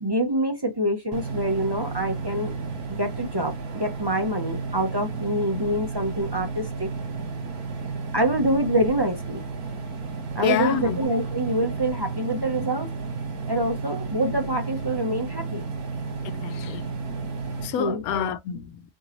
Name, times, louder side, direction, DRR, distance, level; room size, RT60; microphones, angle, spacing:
voice 1, 0.0-2.5 3.0-6.9 8.1-9.4 10.3-12.9 13.5-15.6 17.8-18.0, right 1 dB, 30° right, 0.4 m, -26 dB
sound 1, 1.1-17.7, right 4 dB, 80° right, 1.5 m, -32 dB
voice 2, 10.4-11.0 16.2-16.9 17.6-18.8, left 10 dB, 80° left, 1.1 m, -27 dB
4.3 x 2.7 x 2.9 m
omnidirectional pair, 1.5 m